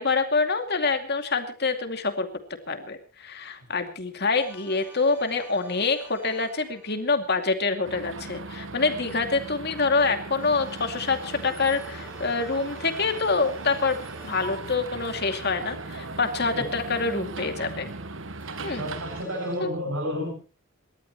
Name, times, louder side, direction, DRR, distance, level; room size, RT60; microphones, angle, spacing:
voice 1, 0.0-2.3 2.7-17.9 18.6-18.9 19.6-19.7, left 4 dB, 50° left, 6 dB, 2.5 m, -26 dB
sound 1, 4.3-7.7 10.4-15.8 18.4-19.6, equal, 10° right, 4.6 m, -49 dB
sound 2, 7.8-19.2, right 3 dB, 60° right, 1.3 m, -38 dB
voice 2, 18.8-20.3, equal, 80° right, 3 dB, 6.7 m, -30 dB
28.0 x 13.5 x 3.1 m, 0.34 s
head